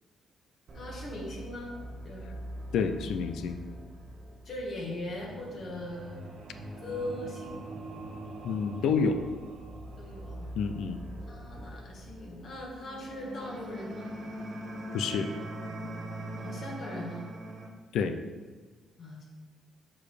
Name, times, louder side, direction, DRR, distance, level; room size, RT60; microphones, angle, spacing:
voice 1, 0.7-1.7 2.0-2.3 4.4-6.2 6.8-7.6 10.0-10.5 11.3-14.1 16.4-17.3 19.0-19.2, left 1 dB, 55° left, -2 dB, 2.0 m, -39 dB
sound 1, 0.7-17.7, right 1 dB, 55° right, 1.4 m, -42 dB
voice 2, 2.7-3.6 8.4-9.2 10.5-11.0 14.9-15.3 17.9-18.1, left 5 dB, 80° left, 8 dB, 0.5 m, -28 dB
6.8 x 4.8 x 4.9 m, 1.4 s
cardioid pair, 90°, 0 cm